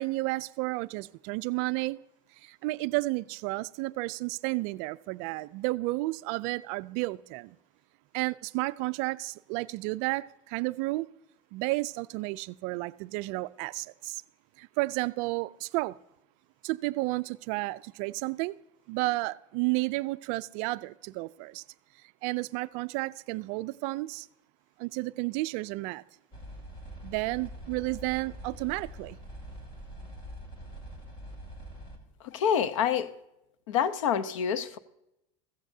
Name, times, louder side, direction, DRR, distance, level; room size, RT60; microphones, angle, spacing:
voice 1, 0.0-2.0 2.4-7.6 8.1-11.1 11.5-14.2 14.6-16.0 16.6-18.6 18.9-21.6 22.2-24.3 24.8-26.0 27.0-29.2, right 22 dB, 45° right, 0.4 m, -32 dB
sound 1, 26.3-32.0, right 1 dB, 30° left, 2.4 m, -44 dB
voice 2, 32.2-33.1 33.7-34.8, left 8 dB, 90° left, 0.8 m, -27 dB
15.0 x 15.0 x 2.7 m
supercardioid pair, 165°, 16 cm